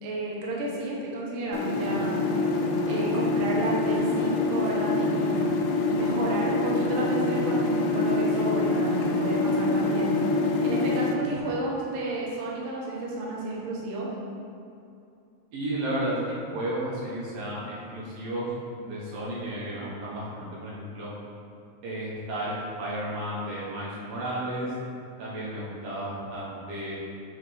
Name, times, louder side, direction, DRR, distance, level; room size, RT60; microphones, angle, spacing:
voice 1, 0.0-2.2 2.9-5.4 5.9-10.1 10.6-14.1, right 2 dB, 70° right, -4 dB, 1.6 m, -32 dB
sound 1, 1.5-11.1, left 3 dB, 90° left, 1.7 m, -25 dB
voice 2, 15.5-18.5 18.8-21.1 21.8-24.7 25.2-26.9, right 1 dB, 85° right, -7 dB, 3.2 m, -33 dB
6.6 x 4.6 x 3.3 m, 2.6 s
omnidirectional pair, 4.1 m